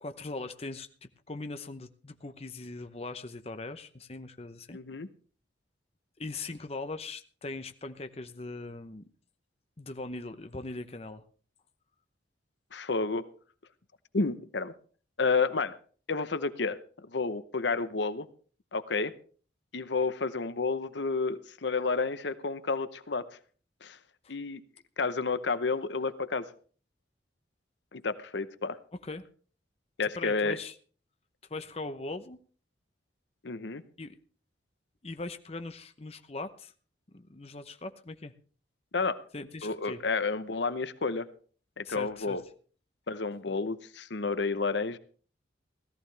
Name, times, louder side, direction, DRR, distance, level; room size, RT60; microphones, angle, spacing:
voice 1, 0.0-4.8 6.2-9.0 9.8-11.2 24.2-24.3 29.0-29.3 30.0-30.7 31.5-32.4 34.0-34.2 35.0-36.7 37.1-38.3 39.3-40.0 41.8-42.4, left 3 dB, 30° left, 8 dB, 0.7 m, -40 dB
voice 2, 4.7-5.1 12.7-13.3 14.1-14.7 15.2-15.8 16.1-16.8 17.1-18.3 18.7-19.1 19.7-23.4 23.8-24.0 24.3-24.6 25.0-26.5 27.9-28.8 30.0-30.6 33.4-33.8 38.9-39.2 39.6-41.3 41.8-42.4 43.1-45.0, left 4 dB, 70° left, 13 dB, 0.8 m, -30 dB
17.5 x 14.0 x 3.3 m, 0.41 s
head